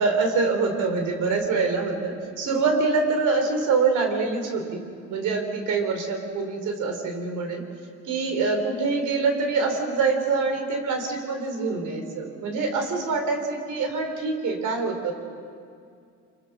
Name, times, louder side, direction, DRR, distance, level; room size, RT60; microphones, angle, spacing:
voice 1, 0.0-4.8 5.1-7.6 8.0-15.1, right 4 dB, 85° right, 4 dB, 4.1 m, -25 dB
25.5 x 25.0 x 6.2 m, 2.3 s
cardioid pair, 90°, 30 cm